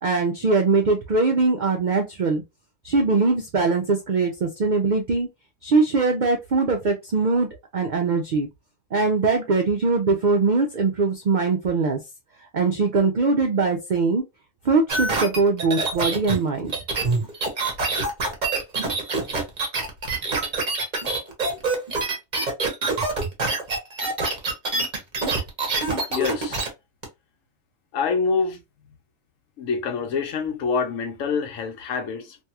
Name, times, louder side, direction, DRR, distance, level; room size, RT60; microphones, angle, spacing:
voice 1, 0.0-2.4 2.8-5.3 5.6-8.5 8.9-12.0 12.5-14.2 14.6-16.7 17.0-17.1, right 3 dB, 80° right, 0.4 m, -21 dB
sound 1, 14.9-26.7 27.0-27.1, right 3 dB, 40° right, 0.8 m, -25 dB
voice 2, 26.1-26.6 27.9-28.6 29.6-32.4, left 5 dB, 75° left, 1.1 m, -26 dB
2.7 x 2.3 x 2.7 m
omnidirectional pair, 1.4 m